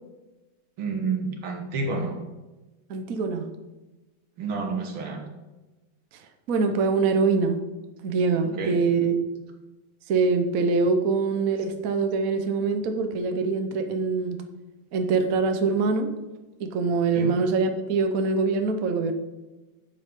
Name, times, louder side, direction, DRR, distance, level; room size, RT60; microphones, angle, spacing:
voice 1, 0.8-2.2 4.4-5.2 8.6-8.8 17.1-17.3, right 4 dB, 90° right, 2 dB, 2.4 m, -29 dB
voice 2, 2.9-3.5 6.5-7.6 8.0-9.2 10.1-14.4 14.9-16.1 16.6-19.1, right 4 dB, 55° right, 7 dB, 1.1 m, -24 dB
12.0 x 7.7 x 3.7 m, 1.1 s
omnidirectional pair, 2.2 m